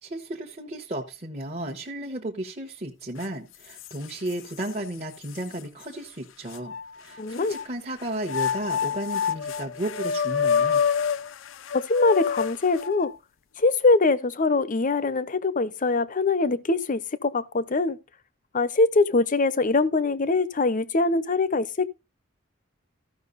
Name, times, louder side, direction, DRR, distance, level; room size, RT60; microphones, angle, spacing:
voice 1, 0.0-10.8, right 1 dB, 35° right, 1.1 m, -34 dB
sound 1, 3.2-3.3 3.8-4.7 5.3-5.4 6.5-7.7 8.2-13.2, left 7 dB, 80° left, 0.5 m, -27 dB
voice 2, 7.2-7.5 11.7-13.1 13.6-18.0 18.5-21.9, left 3 dB, 40° left, 0.7 m, -23 dB
14.0 x 5.7 x 4.0 m
head